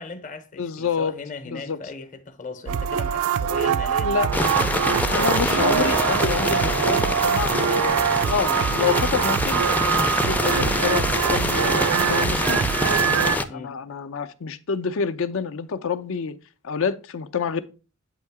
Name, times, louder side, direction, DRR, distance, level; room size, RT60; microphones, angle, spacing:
voice 1, 0.0-4.2 4.6-5.5 13.5-13.7, left 4 dB, 40° left, 0.7 m, -38 dB
voice 2, 0.6-1.1 1.5-1.8 4.0-4.3 5.1-12.6 13.0-16.4 16.6-17.6, left 6 dB, 70° left, 0.5 m, -28 dB
sound 1, 2.7-13.4, right 8 dB, 80° right, 0.4 m, -23 dB
sound 2, 4.3-13.4, left 1 dB, 10° left, 0.4 m, -25 dB
8.1 x 2.8 x 4.6 m
head